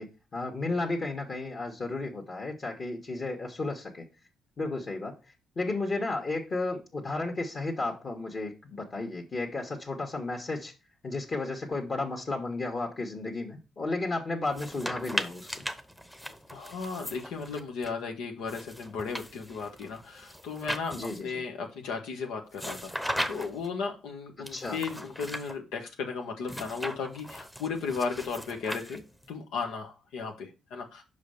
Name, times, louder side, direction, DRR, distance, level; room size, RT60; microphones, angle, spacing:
voice 1, 0.0-4.1 4.6-5.2 5.5-10.7 11.0-15.6 20.9-21.3 24.5-24.8, left 2 dB, 40° left, 1.6 m, -33 dB
sound 1, 14.5-17.9 18.5-21.4 22.5-23.7 24.5-25.5 26.5-29.3, equal, 5° left, 0.8 m, -38 dB
voice 2, 16.5-29.0 29.3-31.0, left 5 dB, 90° left, 1.3 m, -35 dB
5.6 x 5.0 x 6.6 m
cardioid pair, 90°, 0 cm